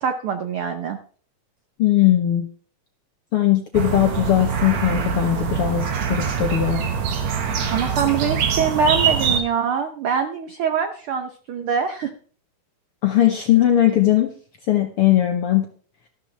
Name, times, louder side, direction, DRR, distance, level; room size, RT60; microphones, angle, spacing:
voice 1, 0.0-1.0 7.7-12.1, right 6 dB, 80° right, 7 dB, 1.2 m, -24 dB
voice 2, 1.8-2.5 3.3-6.8 13.0-14.3 14.7-15.7, left 12 dB, 65° left, 4 dB, 1.4 m, -19 dB
sound 1, 3.7-9.4, right 7 dB, 65° right, 2.6 m, -24 dB
13.0 x 12.0 x 3.3 m, 0.43 s
omnidirectional pair, 3.7 m